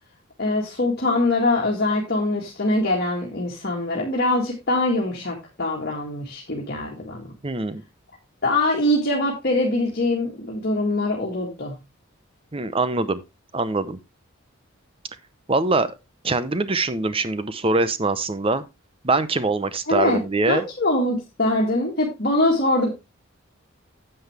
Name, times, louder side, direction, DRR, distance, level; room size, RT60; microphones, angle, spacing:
voice 1, 0.4-7.3 8.4-11.8 19.9-20.2 20.5-22.9, left 2 dB, 50° left, 1.9 m, -23 dB
voice 2, 7.4-7.8 12.5-13.2 13.5-14.0 15.5-15.9 16.2-18.6 19.0-20.7, right 3 dB, 25° right, 0.7 m, -23 dB
9.5 x 7.8 x 3.4 m
head